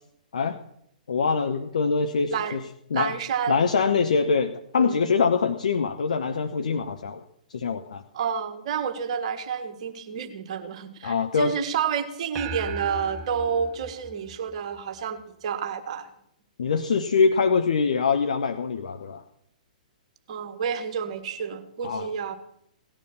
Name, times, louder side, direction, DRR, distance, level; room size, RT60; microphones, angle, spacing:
voice 1, 1.1-2.6 2.9-3.1 3.5-7.2 7.5-8.0 11.0-11.5 16.6-19.2 21.8-22.1, left 5 dB, 60° left, 9 dB, 0.9 m, -24 dB
voice 2, 2.9-3.6 4.8-5.0 8.1-16.1 20.3-22.3, right 7 dB, 50° right, 8 dB, 1.5 m, -29 dB
sound 1, 12.4-15.0, right 3 dB, 30° right, 1.1 m, -37 dB
18.0 x 11.0 x 5.9 m, 0.74 s
figure-of-eight pair, 115°, 4 cm